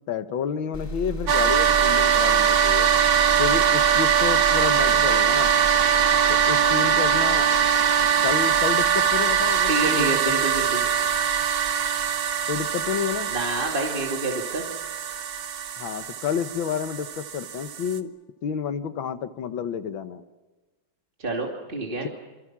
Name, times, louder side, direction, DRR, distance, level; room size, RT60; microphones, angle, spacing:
voice 1, 0.1-2.9 3.4-5.5 6.5-7.5 8.2-10.4 12.5-13.3 15.8-18.1 18.4-20.2, left 7 dB, 75° left, 10 dB, 1.9 m, -30 dB
sound 1, 0.7-8.3, right 1 dB, 10° left, 2.6 m, -36 dB
sound 2, 1.3-18.0, right 8 dB, 80° right, 2.0 m, -22 dB
voice 2, 9.7-10.9 13.3-14.6 21.2-22.1, right 2 dB, 25° right, 0 dB, 2.7 m, -28 dB
26.5 x 26.5 x 6.1 m, 1.2 s
omnidirectional pair, 2.2 m